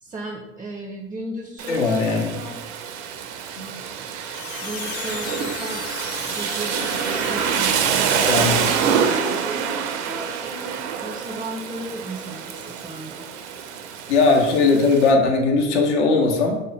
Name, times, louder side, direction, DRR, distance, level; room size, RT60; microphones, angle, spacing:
voice 1, 0.0-2.6 3.6-4.1 4.6-5.9 6.2-6.8 7.2-13.3, right 2 dB, 15° right, 2 dB, 0.4 m, -35 dB
Rain, 1.6-15.1, right 7 dB, 70° right, 0.5 m, -26 dB
voice 2, 1.7-2.3 3.6-3.7 8.2-8.6 14.1-16.6, left 3 dB, 75° left, 1 dB, 0.8 m, -19 dB
sound 1, 4.2-9.4, left 6 dB, 40° left, 0.5 m, -36 dB
3.3 x 2.1 x 3.9 m, 0.99 s
hypercardioid pair, 80°, 35 cm